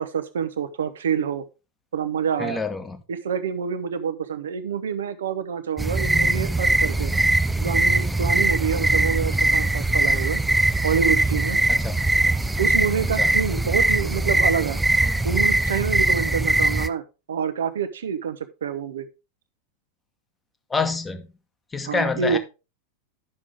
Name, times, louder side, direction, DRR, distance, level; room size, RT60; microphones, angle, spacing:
voice 1, 0.0-1.4 1.9-2.6 3.1-7.1 7.6-10.4 10.8-11.6 12.6-14.8 15.2-17.0 17.3-19.1 21.8-22.4, right 7 dB, 65° right, 0.9 m, -27 dB
voice 2, 2.4-3.0 11.7-12.0 13.2-13.3 20.7-21.3 21.7-22.4, left 4 dB, 15° left, 1.1 m, -27 dB
sound 1, 5.8-16.9, right 2 dB, 5° right, 0.5 m, -21 dB
11.0 x 6.2 x 3.5 m
figure-of-eight pair, 90°, 0 cm